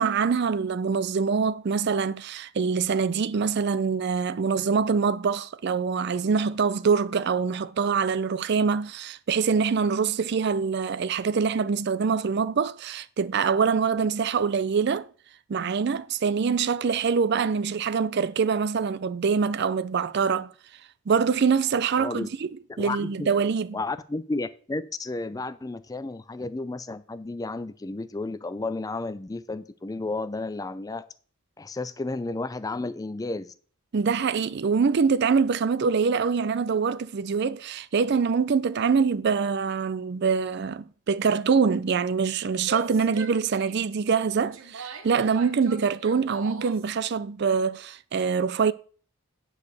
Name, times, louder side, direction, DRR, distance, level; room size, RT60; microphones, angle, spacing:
voice 1, 0.0-15.1 15.5-20.5 21.1-22.3 22.8-23.8 33.9-48.7, right 5 dB, 50° right, 0.4 m, -24 dB
voice 2, 22.0-22.3 22.7-23.3 23.7-31.0 31.6-33.5, left 2 dB, 15° left, 0.4 m, -32 dB
Female speech woman speaking / Yell, 42.5-46.9, right 4 dB, 70° right, 1.0 m, -41 dB
9.6 x 4.8 x 6.5 m
head